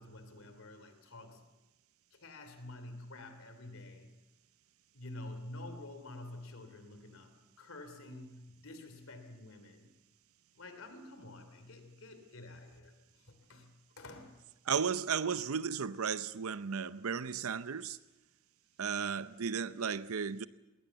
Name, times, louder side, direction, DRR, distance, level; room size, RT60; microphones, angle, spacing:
voice 1, 0.0-1.5 2.1-4.1 4.9-9.9 10.5-14.4, left 2 dB, 70° left, 2.9 m, -49 dB
voice 2, 14.7-18.0 18.8-20.4, right 6 dB, 75° right, 0.6 m, -34 dB
20.0 x 19.0 x 8.1 m
head